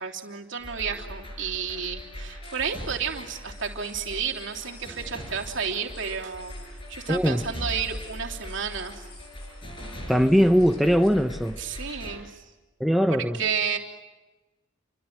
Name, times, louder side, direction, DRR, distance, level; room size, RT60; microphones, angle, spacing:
voice 1, 0.0-6.5 6.9-9.1 11.6-12.4 13.1-13.8, right 6 dB, 70° right, 3.3 m, -31 dB
sound 1, 0.6-12.2, equal, 25° left, 6.7 m, -40 dB
sound 2, 2.4-11.9, left 5 dB, 50° left, 6.2 m, -54 dB
voice 2, 7.1-7.4 10.1-11.6 12.8-13.4, equal, ahead, 0.8 m, -20 dB
29.0 x 25.5 x 7.5 m
head